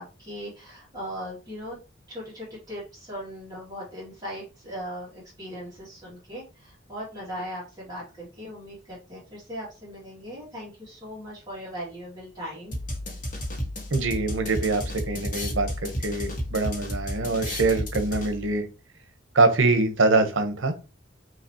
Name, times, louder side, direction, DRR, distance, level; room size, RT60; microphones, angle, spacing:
voice 1, 0.0-1.8 2.1-12.8, equal, 20° right, -7 dB, 2.1 m, -39 dB
sound 1, 12.7-18.6, left 1 dB, 40° left, 1.4 m, -32 dB
voice 2, 13.9-14.8 15.1-18.7 19.3-20.7, right 3 dB, 75° right, 7 dB, 1.0 m, -24 dB
5.8 x 3.0 x 2.9 m, 0.31 s
head